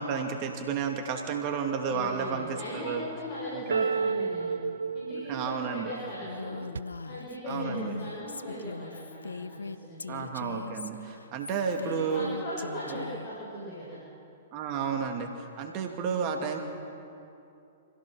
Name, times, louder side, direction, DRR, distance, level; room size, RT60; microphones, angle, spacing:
voice 1, 0.0-3.0 3.5-3.9 5.3-5.9 7.5-8.0 10.1-12.3 12.9-13.0 14.5-16.6, right 6 dB, 40° right, 4 dB, 2.4 m, -32 dB
voice 2, 1.9-4.6 4.9-6.6 7.0-10.2 11.8-14.0, left 1 dB, 50° left, -7 dB, 7.0 m, -39 dB
sound 1, 3.7-6.8, right 5 dB, 75° right, 0.4 m, -31 dB
Female speech woman speaking, 6.3-13.3, left 3 dB, 85° left, 0.7 m, -39 dB
26.0 x 16.5 x 6.3 m, 2.7 s
figure-of-eight pair, 115°, 0 cm